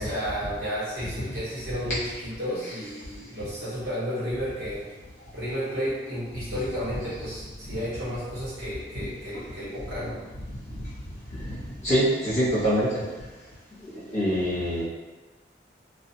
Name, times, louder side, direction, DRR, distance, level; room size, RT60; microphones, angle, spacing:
voice 1, 0.0-4.9 5.3-10.2, equal, 60° right, -10 dB, 1.2 m, -32 dB
voice 2, 11.8-13.0 14.1-14.8, equal, 40° left, -10 dB, 1.1 m, -24 dB
2.4 x 2.4 x 2.8 m, 1.2 s
head